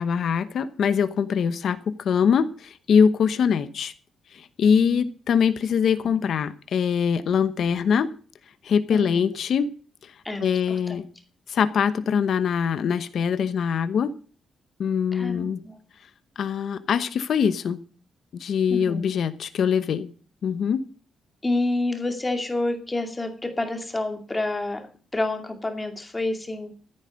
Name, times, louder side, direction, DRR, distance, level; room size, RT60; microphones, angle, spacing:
voice 1, 0.0-3.9 4.3-8.1 8.6-9.7 10.0-10.1 10.4-11.0 11.5-14.1 14.8-15.6 16.4-17.8 18.3-20.1 20.4-20.8, left 7 dB, 60° left, 12 dB, 1.0 m, -23 dB
voice 2, 4.8-5.1 8.9-9.2 10.2-10.8 15.1-15.8 18.7-19.0 21.4-24.8 25.1-26.7, left 2 dB, 15° left, 5 dB, 2.3 m, -28 dB
15.0 x 9.0 x 6.5 m, 0.40 s
wide cardioid pair, 170°, 0 cm